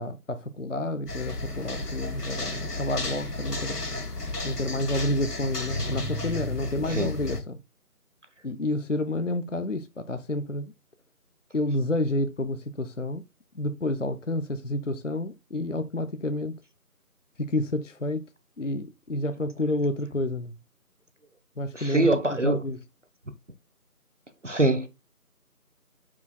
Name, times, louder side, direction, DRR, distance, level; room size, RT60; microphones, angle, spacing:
voice 1, 0.0-3.8 4.4-7.6 8.4-10.7 11.5-13.2 13.5-16.6 17.4-18.2 18.6-20.5 21.6-22.8, left 1 dB, 55° left, 0.6 m, -29 dB
sound 1, 1.1-7.4, left 2 dB, 80° left, 1.9 m, -33 dB
voice 2, 21.7-22.6 24.4-24.9, right 2 dB, 50° right, 1.0 m, -24 dB
8.5 x 6.1 x 2.2 m
figure-of-eight pair, 175°, 46 cm